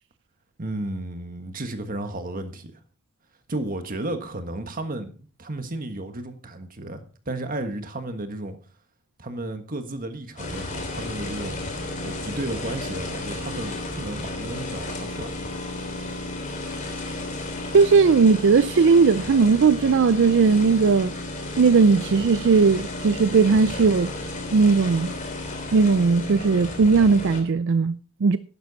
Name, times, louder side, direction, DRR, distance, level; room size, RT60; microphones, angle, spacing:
voice 1, 0.6-2.8 3.5-5.1 5.4-8.6 9.2-15.3, right 2 dB, 40° right, 1.5 m, -33 dB
sound 1, 10.4-27.4, left 2 dB, 35° left, 3.1 m, -33 dB
voice 2, 17.7-21.1 21.6-24.1 24.5-25.1 25.7-28.4, right 4 dB, 55° right, 0.4 m, -18 dB
11.5 x 10.5 x 4.0 m
head